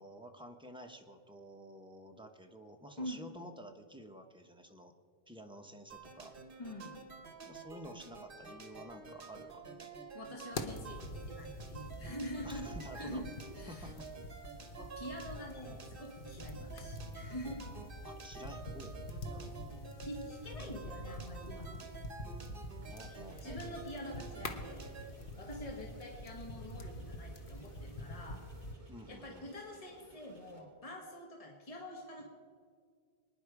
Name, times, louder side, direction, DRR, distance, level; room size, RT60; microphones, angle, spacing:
voice 1, 0.0-4.9 5.3-6.3 7.4-9.9 12.4-13.2 13.7-14.1 18.0-19.0 22.9-23.8 28.9-29.5, equal, 5° right, 3 dB, 0.9 m, -51 dB
sound 1, 5.9-25.1, right 4 dB, 55° right, 1.3 m, -50 dB
voice 2, 6.6-7.0 10.1-13.9 14.8-17.7 19.3-19.6 20.0-21.8 23.4-24.9 25.3-28.4 29.1-32.3, equal, 35° left, 0 dB, 1.7 m, -46 dB
sound 2, 10.5-28.7, left 1 dB, 55° left, 1.2 m, -46 dB
sound 3, 22.8-30.6, right 1 dB, 25° right, 2.6 m, -59 dB
23.5 x 10.0 x 4.8 m, 2.1 s
omnidirectional pair, 1.1 m